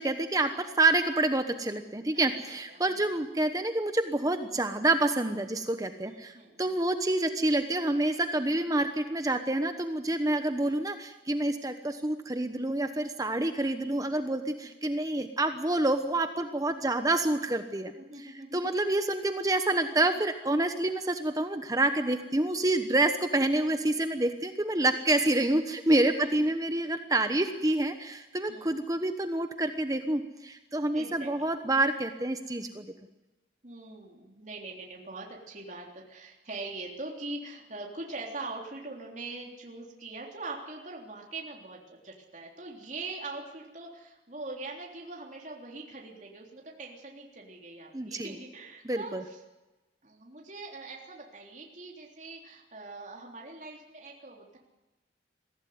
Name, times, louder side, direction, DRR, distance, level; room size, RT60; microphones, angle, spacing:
voice 1, 0.0-17.9 18.2-32.9 47.9-48.3 48.8-49.2, right 2 dB, 20° right, 8 dB, 1.1 m, -28 dB
voice 2, 2.4-3.1 6.0-6.8 14.6-14.7 18.0-18.7 19.9-20.0 26.1-26.5 28.4-28.8 30.9-31.5 33.6-49.4 50.0-54.6, right 3 dB, 40° right, -1 dB, 3.5 m, -42 dB
23.0 x 16.0 x 9.5 m, 1.1 s
head